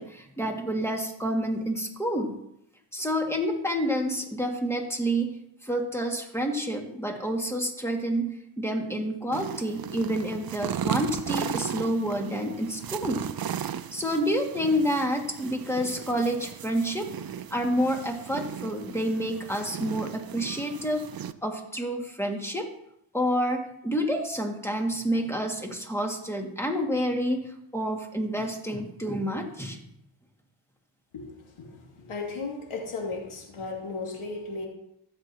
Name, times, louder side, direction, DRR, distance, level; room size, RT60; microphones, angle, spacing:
voice 1, 0.0-2.4 2.9-5.3 5.6-13.3 13.9-17.1 17.5-21.1 21.4-22.7 23.1-29.8, equal, 5° left, 2 dB, 2.1 m, -28 dB
sound 1, 9.3-21.3, right 9 dB, 50° right, 0.6 m, -36 dB
voice 2, 31.1-34.7, left 3 dB, 85° left, -1 dB, 2.5 m, -35 dB
15.0 x 7.6 x 2.9 m, 0.79 s
cardioid pair, 55°, 48 cm